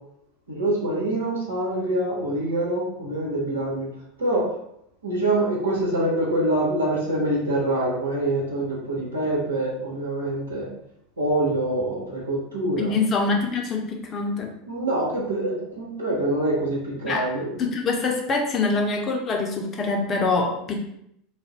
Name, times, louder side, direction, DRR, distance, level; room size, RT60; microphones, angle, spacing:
voice 1, 0.5-3.9 4.2-4.5 5.0-10.7 11.2-12.9 14.7-17.5, right 1 dB, 80° right, -4 dB, 0.9 m, -25 dB
voice 2, 12.8-14.5 17.0-17.3 17.6-20.9, left 3 dB, 35° left, 1 dB, 0.6 m, -24 dB
2.5 x 2.1 x 3.5 m, 0.75 s
figure-of-eight pair, 80°, 0 cm